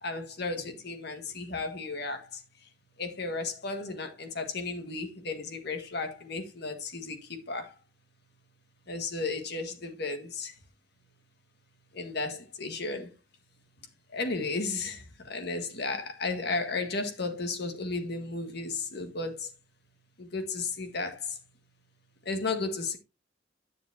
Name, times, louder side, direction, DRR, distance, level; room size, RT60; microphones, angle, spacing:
voice 1, 0.0-2.4 3.0-7.7 8.9-10.5 11.9-13.1 14.1-19.5 20.2-21.4 22.2-23.0, left 3 dB, 60° left, 1.7 m, -34 dB
9.8 x 7.1 x 2.8 m
head